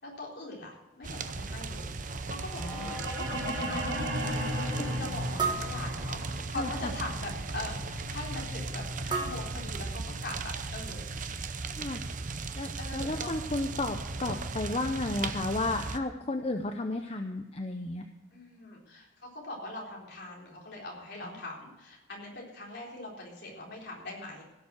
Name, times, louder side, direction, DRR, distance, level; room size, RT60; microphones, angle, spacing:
voice 1, 0.0-4.0 4.3-11.1 12.8-13.3 18.3-24.4, left 2 dB, 55° left, -2 dB, 4.1 m, -42 dB
sound 1, 1.0-16.0, right 3 dB, 40° right, 0.7 m, -37 dB
sound 2, 2.1-10.2, equal, 65° right, 3.8 m, -36 dB
voice 2, 2.6-2.9 4.8-4.9 6.6-6.7 11.8-12.0 12.6-18.1, left 2 dB, 30° left, 6 dB, 0.6 m, -33 dB
sound 3, 2.8-2.9 3.4-3.6 5.4-6.6 9.1-10.4, right 5 dB, 20° right, 1.4 m, -35 dB
16.5 x 7.0 x 6.3 m, 1.1 s
head